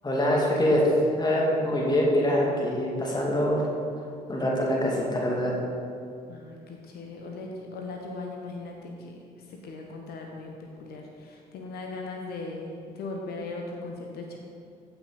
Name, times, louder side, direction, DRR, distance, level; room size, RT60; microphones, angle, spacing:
voice 1, 0.0-0.9 1.2-3.6 4.3-5.6, left 1 dB, 20° left, -3 dB, 2.6 m, -24 dB
voice 2, 6.3-9.2 9.5-14.4, left 3 dB, 50° left, 1 dB, 1.1 m, -38 dB
15.0 x 5.8 x 4.1 m, 2.4 s
figure-of-eight pair, 50°, 20 cm